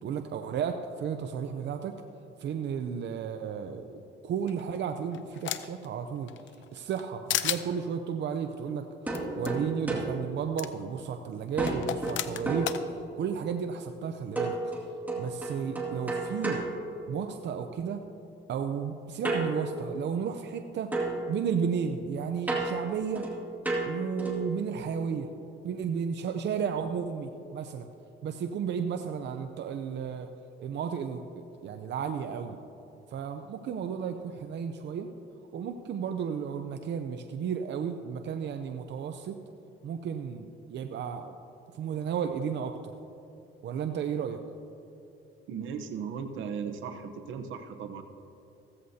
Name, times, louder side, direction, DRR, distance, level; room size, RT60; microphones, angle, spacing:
voice 1, 0.0-1.9 2.4-6.3 6.7-8.9 9.4-14.7 15.2-16.6 17.1-18.0 18.5-23.3 23.8-25.3 25.6-27.9 28.2-30.3 30.6-32.6 33.1-35.1 35.5-39.4 39.8-41.4 41.7-42.9 43.6-44.4, right 7 dB, 65° right, 6 dB, 0.6 m, -33 dB
sound 1, 4.5-5.9 6.3-7.0 7.3-7.6 9.1-9.2 9.4-9.5 10.6-10.7 11.7-12.8, left 11 dB, 75° left, 0.6 m, -32 dB
sound 2, 9.1-11.2 11.6-13.4 14.4-17.6 19.2-20.6 20.9-24.6, right 2 dB, 10° right, 2.2 m, -34 dB
voice 2, 45.5-48.0, right 6 dB, 80° right, 7 dB, 0.9 m, -37 dB
15.5 x 14.0 x 2.8 m, 2.9 s
cardioid pair, 90°, 20 cm